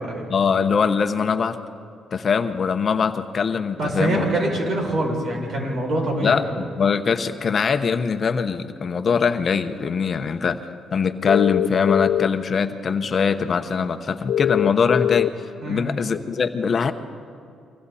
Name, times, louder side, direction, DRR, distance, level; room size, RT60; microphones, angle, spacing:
voice 1, 0.3-1.6 2.1-4.3 6.2-10.6 10.9-15.3 15.6-16.9, left 6 dB, 45° left, 8 dB, 1.0 m, -22 dB
voice 2, 3.8-6.4 15.6-15.9, right 1 dB, 60° right, 0 dB, 6.6 m, -24 dB
sound 1, 11.3-12.3 14.3-15.3, left 11 dB, 75° left, 0.5 m, -21 dB
29.0 x 24.5 x 4.3 m, 2.5 s
cardioid pair, 90°, 0 cm